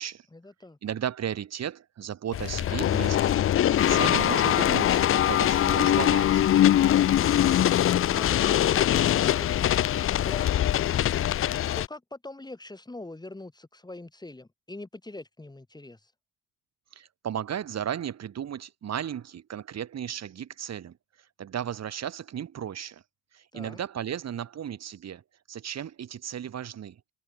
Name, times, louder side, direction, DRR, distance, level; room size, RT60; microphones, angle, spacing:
voice 1, 0.3-0.8 8.0-10.5 11.8-16.1 23.5-23.8, left 2 dB, 15° left, 2.7 m, -42 dB
voice 2, 0.8-3.4 3.7-6.5 16.9-23.0 23.3-25.2 25.5-27.0, right 9 dB, 60° right, 3.3 m, -35 dB
sound 1, 2.3-11.9, left 11 dB, 45° left, 0.5 m, -22 dB
cardioid pair, 90°, 30 cm